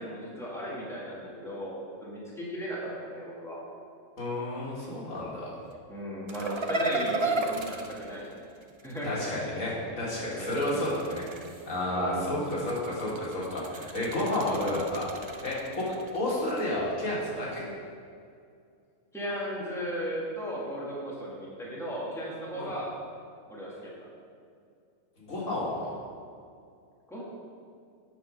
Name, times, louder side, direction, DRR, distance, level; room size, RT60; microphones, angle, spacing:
voice 1, 0.0-3.6 5.9-8.3 8.8-9.4 10.3-11.0 11.9-12.6 19.1-22.9 23.5-23.9 27.1-27.2, equal, ahead, -6 dB, 1.9 m, -36 dB
voice 2, 4.2-5.5 9.0-11.3 11.6-15.9 16.1-17.6 22.6-22.7 25.2-25.9, left 1 dB, 80° left, -6 dB, 2.4 m, -31 dB
sound 1, 6.3-9.0 10.3-11.8 12.4-16.6, right 2 dB, 45° right, 0.3 m, -35 dB
8.9 x 6.1 x 5.3 m, 2.3 s
omnidirectional pair, 1.3 m